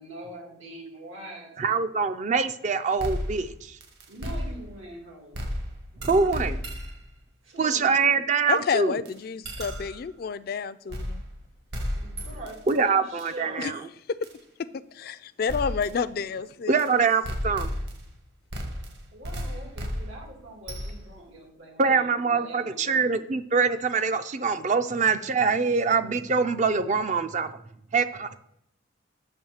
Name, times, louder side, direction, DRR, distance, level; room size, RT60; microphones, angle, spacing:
voice 1, 0.0-1.8 4.1-5.4 7.4-8.3 11.9-13.9 19.1-23.2, right 1 dB, 85° right, -2 dB, 2.1 m, -43 dB
voice 2, 1.6-3.5 6.0-6.6 7.6-9.0 12.7-13.8 16.7-17.7 21.8-27.6 27.9-28.4, right 5 dB, 35° right, 10 dB, 0.4 m, -24 dB
sound 1, 3.0-4.9 5.3-7.1 9.1-9.2 9.4-10.1 10.9-11.4 11.7-12.8 13.2-13.3 14.2-14.4 15.5-16.0 16.8-16.9 17.2-18.2 18.5-21.2, equal, 55° right, 1.2 m, -34 dB
voice 3, 8.5-11.2 13.6-13.7 14.1-14.2 14.6-14.7 14.9-16.8, left 6 dB, 50° left, 14 dB, 0.3 m, -29 dB
8.4 x 3.1 x 6.5 m, 0.75 s
head